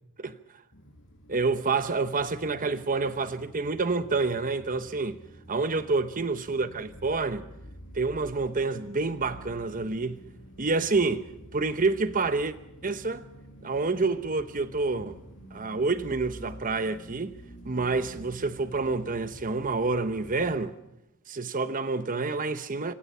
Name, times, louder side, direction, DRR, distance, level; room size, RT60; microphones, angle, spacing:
sound 1, 0.7-20.5, equal, 60° left, 6.1 m, -49 dB
voice 1, 1.3-5.2 5.5-7.5 7.9-10.2 10.6-11.2 11.5-12.5 12.8-13.2 13.6-15.2 15.5-17.3 17.7-20.7 21.3-22.9, right 3 dB, 40° right, 1.0 m, -28 dB
26.0 x 24.5 x 5.7 m
head